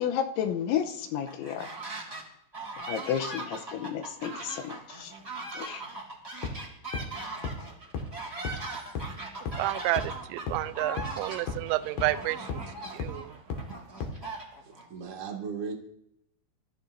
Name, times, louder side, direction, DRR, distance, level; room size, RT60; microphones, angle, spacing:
voice 1, 0.0-1.7 2.9-5.1 5.5-5.8, left 9 dB, 80° left, 3.1 m, -31 dB
sound 1, 1.3-2.2 2.5-14.9, right 2 dB, 20° right, 2.2 m, -40 dB
sound 2, 6.4-6.5 6.9-7.0 7.4-7.5 7.9-8.0 8.5-8.6 9.0-9.1 9.5-9.6 10.0-10.1 10.5-10.6 11.0-11.1 11.5-11.6 12.0-12.1 12.5-12.6 13.0-13.1 13.5-13.6 14.0-14.1, left 5 dB, 60° left, 3.7 m, -32 dB
voice 2, 9.6-12.6 12.9-13.4, right 17 dB, 80° right, 2.8 m, -30 dB
voice 3, 14.6-15.7, right 6 dB, 45° right, 1.0 m, -37 dB
26.5 x 14.5 x 2.7 m
omnidirectional pair, 5.7 m